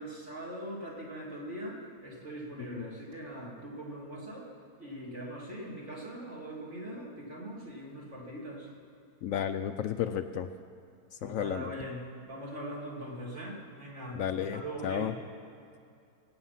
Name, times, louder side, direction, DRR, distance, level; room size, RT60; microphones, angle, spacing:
voice 1, 0.0-4.5 4.8-8.7 11.2-15.2, right 1 dB, 50° right, -4 dB, 3.1 m, -41 dB
voice 2, 9.2-10.5 11.2-11.7 14.1-15.1, left 9 dB, 70° left, 9 dB, 0.9 m, -32 dB
23.0 x 8.8 x 5.7 m, 2.5 s
omnidirectional pair, 1.6 m